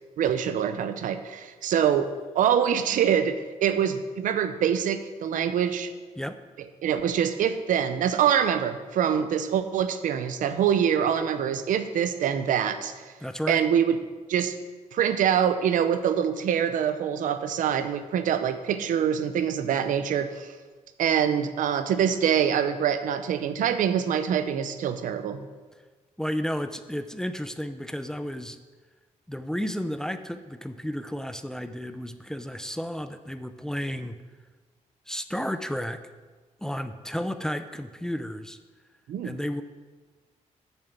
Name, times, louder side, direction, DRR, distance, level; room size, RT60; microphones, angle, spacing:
voice 1, 0.2-2.1 2.3-5.9 6.8-13.0 13.5-14.0 14.3-14.6 14.9-20.5 21.0-25.5 39.1-39.4, right 8 dB, 85° right, 10 dB, 0.7 m, -25 dB
voice 2, 13.2-13.6 26.2-28.6 29.3-34.2 35.1-36.0 36.6-38.6 39.2-39.6, equal, 5° left, 10 dB, 0.4 m, -32 dB
7.1 x 6.7 x 7.3 m, 1.4 s
cardioid pair, 130°, 13 cm